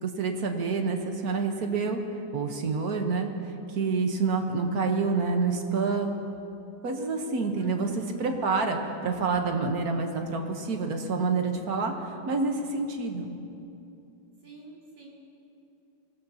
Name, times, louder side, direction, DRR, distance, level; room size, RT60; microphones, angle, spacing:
voice 1, 0.0-2.0 2.3-6.1 6.8-7.9 8.2-13.3, right 4 dB, 55° right, 4 dB, 1.5 m, -28 dB
voice 2, 7.6-8.1 14.4-15.1, equal, 75° right, -5 dB, 3.6 m, -45 dB
24.0 x 18.0 x 2.9 m, 2.8 s
omnidirectional pair, 2.0 m